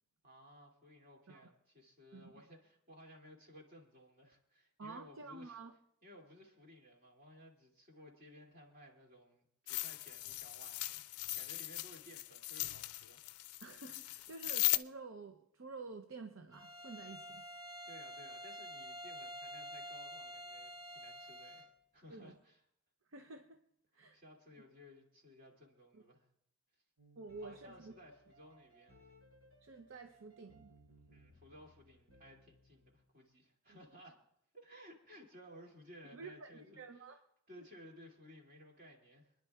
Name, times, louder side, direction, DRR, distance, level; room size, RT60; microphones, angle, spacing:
voice 1, 0.2-5.6 6.0-11.1 11.3-13.2 13.5-13.6 17.9-22.6 23.9-26.3 27.4-29.0 31.1-34.2 34.5-37.0 37.5-39.3, equal, 40° right, -1 dB, 2.5 m, -58 dB
voice 2, 4.8-5.7 13.6-17.5 22.1-22.3 23.1-23.6 23.9-24.2 25.9-26.0 27.2-27.9 29.6-30.7 33.7-33.8 36.1-37.2, right 3 dB, 65° right, 6 dB, 0.6 m, -50 dB
sound 1, 9.7-14.8, left 18 dB, 85° left, 0.4 m, -38 dB
Bowed string instrument, 16.5-21.8, equal, 15° right, 0.8 m, -48 dB
sound 2, 27.0-33.0, equal, 85° right, 6.1 m, -64 dB
28.0 x 10.5 x 2.4 m, 0.74 s
head